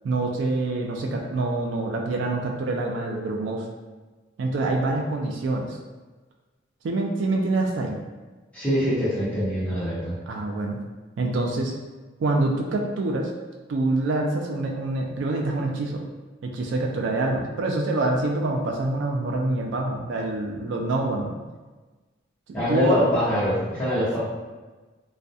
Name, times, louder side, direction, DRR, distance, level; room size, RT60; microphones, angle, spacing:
voice 1, 0.0-3.7 4.4-5.8 6.8-8.0 10.3-10.8 11.2-11.7 12.2-13.3 13.7-16.0 16.4-21.3 22.7-23.0, right 2 dB, 70° right, 1 dB, 0.3 m, -26 dB
voice 2, 8.5-10.1 22.5-24.2, equal, 5° left, -12 dB, 0.9 m, -24 dB
2.3 x 2.1 x 2.6 m, 1.3 s
head